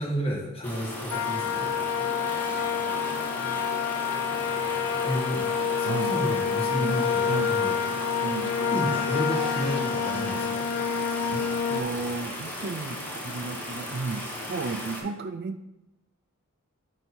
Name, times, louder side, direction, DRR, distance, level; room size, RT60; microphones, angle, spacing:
voice 1, 0.0-1.8 5.0-5.4 5.8-7.8 8.7-10.7, equal, 30° left, -3 dB, 1.5 m, -31 dB
sound 1, 0.6-15.0, equal, 10° left, 1.0 m, -36 dB
sound 2, 1.1-11.8, left 7 dB, 85° left, 0.5 m, -28 dB
voice 2, 8.2-8.5 11.3-15.7, right 3 dB, 50° right, 9 dB, 0.4 m, -34 dB
7.9 x 2.8 x 4.3 m, 0.90 s
head